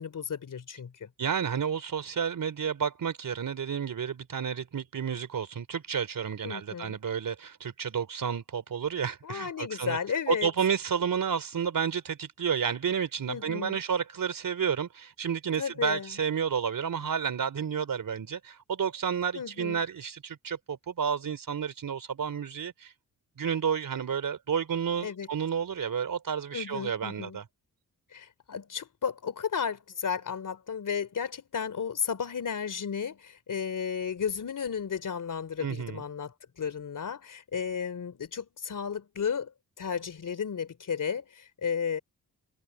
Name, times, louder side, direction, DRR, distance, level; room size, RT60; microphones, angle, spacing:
voice 1, 0.0-1.1 6.4-7.0 9.2-10.5 13.3-13.8 15.6-16.2 19.3-19.8 25.0-25.3 26.5-27.4 28.1-36.3 36.6-42.0, left 7 dB, 60° left, 3.2 m, -33 dB
voice 2, 1.2-10.0 10.3-22.9 23.4-27.4 35.6-36.0, right 7 dB, 65° right, 3.6 m, -31 dB
cardioid pair, 75°, 36 cm